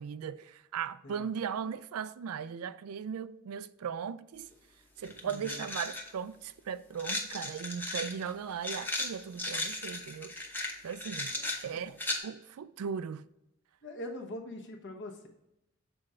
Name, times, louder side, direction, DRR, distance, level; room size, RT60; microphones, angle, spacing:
voice 1, 0.0-4.5 5.0-10.3 10.8-11.3 11.6-13.2, right 7 dB, 85° right, 0.4 m, -38 dB
sound 1, 4.5-4.6 5.0-6.1 7.0-12.2, left 2 dB, 10° left, 0.8 m, -36 dB
voice 2, 5.2-5.7 11.3-11.8 13.8-15.3, left 1 dB, 55° left, 1.1 m, -43 dB
6.8 x 4.3 x 3.7 m
head